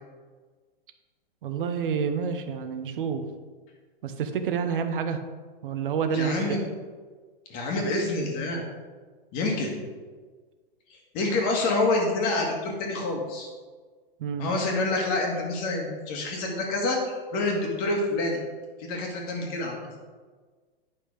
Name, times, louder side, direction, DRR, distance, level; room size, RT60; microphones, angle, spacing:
voice 1, 1.4-3.3 4.0-5.2 5.6-6.6 14.2-14.5, right 6 dB, 60° right, 7 dB, 1.0 m, -28 dB
voice 2, 6.1-6.6 7.5-8.6 9.3-9.8 11.1-13.5 14.4-17.0 17.3-18.4 18.8-19.8, left 2 dB, 30° left, 1 dB, 1.8 m, -27 dB
9.6 x 5.8 x 4.9 m, 1.5 s
hypercardioid pair, 155°, 30 cm